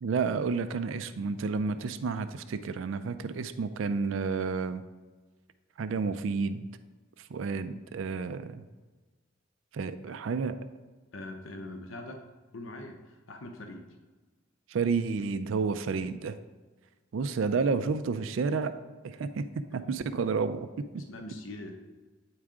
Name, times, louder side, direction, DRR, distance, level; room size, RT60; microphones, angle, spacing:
voice 1, 0.0-4.8 5.8-6.7 7.3-8.6 9.7-10.6 14.7-16.3 17.1-18.7 19.0-19.5 19.7-20.7 20.9-21.0, right 5 dB, 75° right, 11 dB, 0.4 m, -30 dB
voice 2, 10.1-10.6 11.1-12.2 12.5-13.9 19.7-20.0 21.0-21.8, left 2 dB, 85° left, 4 dB, 0.8 m, -43 dB
8.8 x 4.7 x 3.7 m, 1.3 s
head